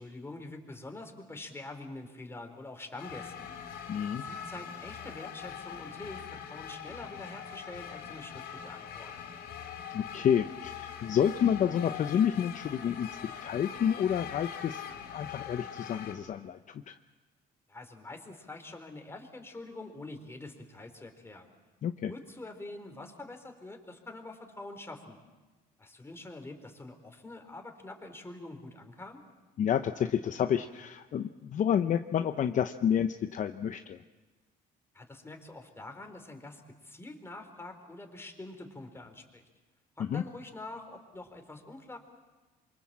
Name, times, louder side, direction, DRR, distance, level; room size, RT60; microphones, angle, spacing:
voice 1, 0.0-3.5 4.1-9.1 17.7-21.5 22.0-25.2 25.8-29.2 34.9-39.4 40.0-42.0, left 2 dB, 15° left, 5 dB, 4.0 m, -45 dB
sound 1, 3.0-16.2, left 8 dB, 85° left, 4.5 m, -42 dB
voice 2, 3.9-4.2 9.9-13.1 13.4-14.8 15.1-16.9 21.8-22.1 29.6-34.0 40.1-40.2, left 8 dB, 50° left, 8 dB, 0.8 m, -29 dB
27.5 x 24.5 x 7.4 m, 1.2 s
cardioid pair, 110°, 17 cm